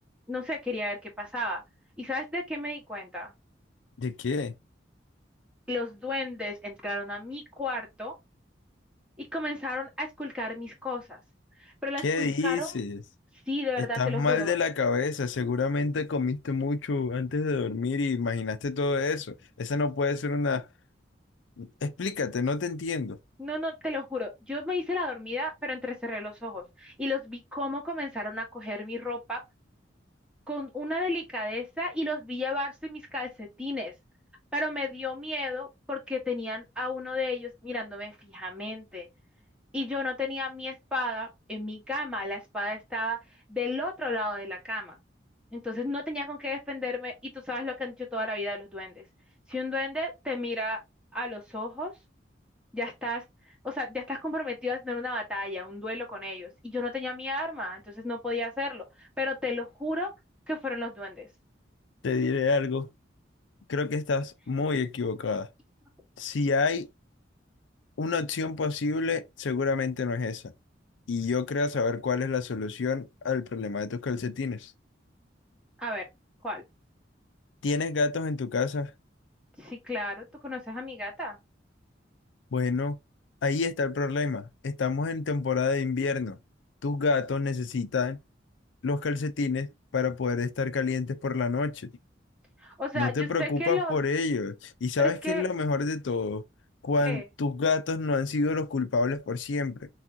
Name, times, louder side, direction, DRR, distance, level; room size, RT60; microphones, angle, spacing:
voice 1, 0.3-1.6 2.0-3.3 5.7-8.1 9.2-11.2 11.6-12.8 13.5-14.5 23.4-29.4 30.5-33.9 34.5-39.1 39.7-43.2 43.5-45.0 45.5-49.0 49.5-50.8 51.1-51.9 52.7-53.2 53.6-60.1 60.5-61.3 75.8-76.0 76.4-76.6 79.6-81.4 92.6-94.0 95.0-95.4 97.0-97.2, left 2 dB, 5° right, 1.5 m, -33 dB
voice 2, 4.0-4.5 12.0-13.0 13.8-20.7 21.6-23.2 62.0-62.9 63.7-65.5 66.2-66.9 68.0-70.5 71.1-74.7 77.6-78.9 82.5-83.0 83.4-86.4 86.8-88.2 88.8-91.9 92.9-96.4 96.8-99.9, left 4 dB, 90° left, 0.5 m, -28 dB
6.0 x 2.4 x 2.7 m
head